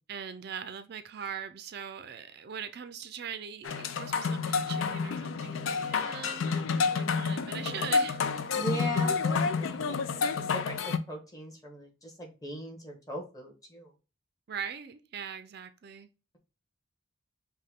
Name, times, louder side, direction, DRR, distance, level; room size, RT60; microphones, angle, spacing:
voice 1, 0.1-8.2 14.5-16.1, right 7 dB, 55° right, 0.4 m, -41 dB
sound 1, 3.6-11.0, left 5 dB, 90° left, 0.5 m, -29 dB
voice 2, 8.5-10.1 10.3-13.9, equal, 20° left, 1.1 m, -39 dB
5.4 x 2.2 x 3.6 m
head